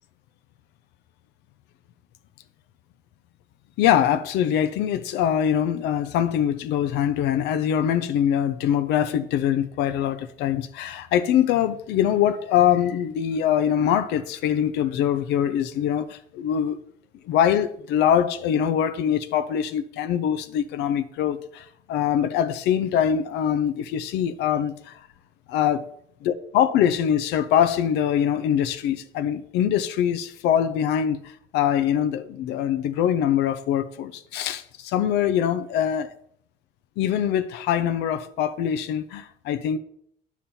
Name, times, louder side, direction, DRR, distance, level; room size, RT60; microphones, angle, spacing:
voice 1, 3.8-16.8 17.3-25.0 25.5-25.9 26.2-31.2 31.5-36.1 37.0-39.8, left 9 dB, 85° left, 0.7 m, -23 dB
9.0 x 7.3 x 4.2 m
cardioid pair, 110°, 17 cm